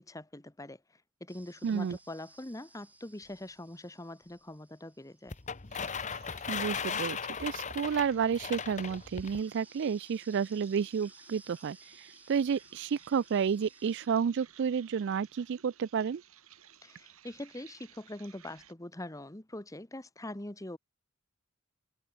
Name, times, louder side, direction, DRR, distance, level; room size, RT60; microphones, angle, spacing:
voice 1, 0.0-5.3 16.8-20.8, left 1 dB, 15° left, 1.2 m, -43 dB
sound 1, 1.3-14.1, right 2 dB, 5° right, 4.5 m, -60 dB
voice 2, 1.6-2.0 6.5-16.2, right 6 dB, 55° right, 0.3 m, -31 dB
sound 2, 5.3-9.4, left 6 dB, 35° left, 1.0 m, -37 dB
sound 3, 5.7-18.7, right 9 dB, 80° right, 4.5 m, -58 dB
head